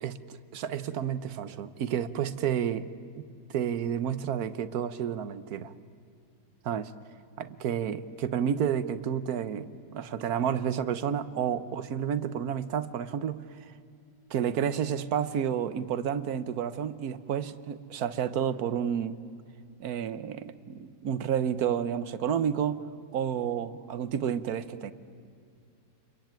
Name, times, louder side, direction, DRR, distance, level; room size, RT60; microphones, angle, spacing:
voice 1, 0.0-3.2 3.5-5.7 6.6-6.9 7.4-13.5 14.3-19.2 19.8-22.9 23.1-24.9, right 8 dB, 60° right, 13 dB, 1.3 m, -30 dB
28.5 x 22.5 x 9.0 m, 2.3 s
omnidirectional pair, 2.0 m